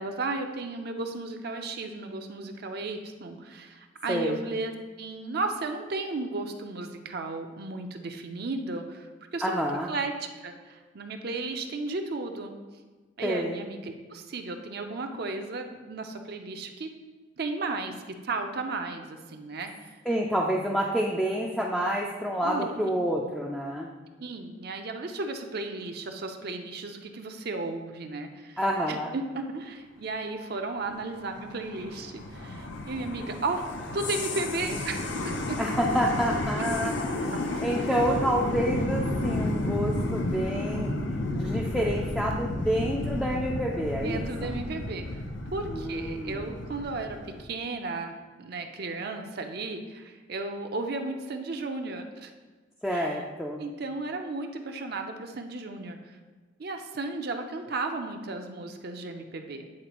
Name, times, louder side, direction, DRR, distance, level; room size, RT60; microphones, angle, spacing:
voice 1, 0.0-4.7 5.0-12.5 13.2-16.9 17.4-19.9 22.4-23.0 24.2-28.6 28.9-35.6 43.9-45.2 45.5-52.3 52.9-53.2 53.6-56.2 56.6-59.6, right 3 dB, 55° right, 4 dB, 0.5 m, -34 dB
voice 2, 4.1-4.4 9.4-9.9 13.2-13.6 20.1-23.9 28.6-29.1 35.6-36.9 37.6-40.9 41.3-44.6 45.7-46.5 52.8-53.6, equal, 5° left, -3 dB, 0.4 m, -28 dB
sound 1, 30.9-47.4, left 2 dB, 80° left, 0.6 m, -32 dB
8.6 x 4.1 x 3.0 m, 1.3 s
head